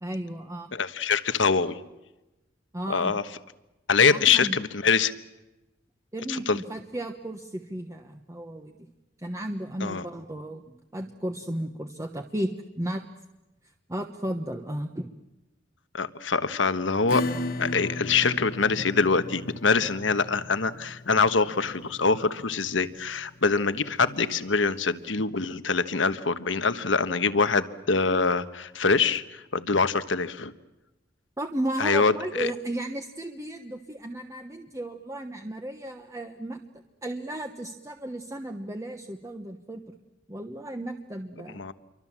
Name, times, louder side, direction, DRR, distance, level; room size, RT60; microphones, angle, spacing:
voice 1, 0.0-0.7 2.7-3.1 4.1-4.6 6.1-8.8 9.2-13.1 13.9-15.1 31.4-36.6 37.0-39.8 40.3-41.6, right 1 dB, 15° right, 5 dB, 1.1 m, -34 dB
voice 2, 0.7-1.8 2.9-3.2 3.9-5.1 6.3-6.6 9.8-10.0 15.9-17.2 17.6-30.5 31.8-32.5 41.5-41.7, left 4 dB, 70° left, 12 dB, 1.3 m, -24 dB
Acoustic guitar / Strum, 17.1-24.3, left 2 dB, 50° left, 1.3 m, -36 dB
28.5 x 24.0 x 7.5 m, 1.0 s
head